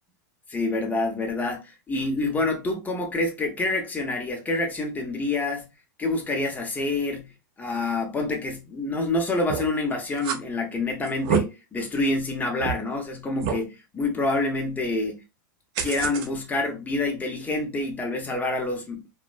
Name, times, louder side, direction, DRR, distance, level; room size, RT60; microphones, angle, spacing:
voice 1, 0.5-5.7 6.0-7.3 7.6-15.2 15.8-19.1, left 2 dB, 15° left, 0.7 m, -27 dB
sound 1, 9.5-9.8 10.2-10.4 11.0-11.4 12.0-12.1 12.6-12.7 13.4-13.6 15.8-16.3, right 7 dB, 50° right, 0.5 m, -26 dB
2.5 x 2.1 x 2.4 m
hypercardioid pair, 120°, 11 cm